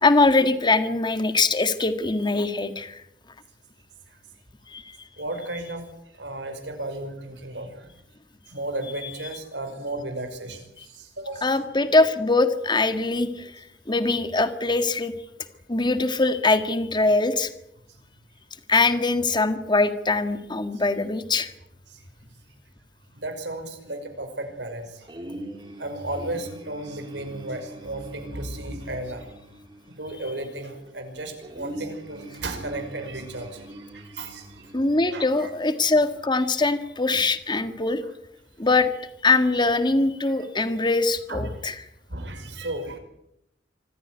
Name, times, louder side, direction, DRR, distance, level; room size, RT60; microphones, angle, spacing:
voice 1, 0.0-3.0 4.7-5.0 10.8-10.9 11.4-15.1 15.7-17.5 18.7-21.5 34.7-38.0 38.6-38.9 39.2-41.8, left 3 dB, 25° left, 10 dB, 1.7 m, -22 dB
voice 2, 5.2-5.8 6.1-7.9 8.5-11.5 20.7-20.8 21.9-22.0 23.1-25.1 25.8-29.3 29.9-34.7 35.1-35.5 41.3-41.5 42.1-43.0, right 2 dB, 80° right, 6 dB, 5.6 m, -34 dB
sound 1, 25.1-36.3, right 1 dB, 25° right, 4.6 m, -43 dB
25.5 x 15.0 x 9.6 m, 0.81 s
head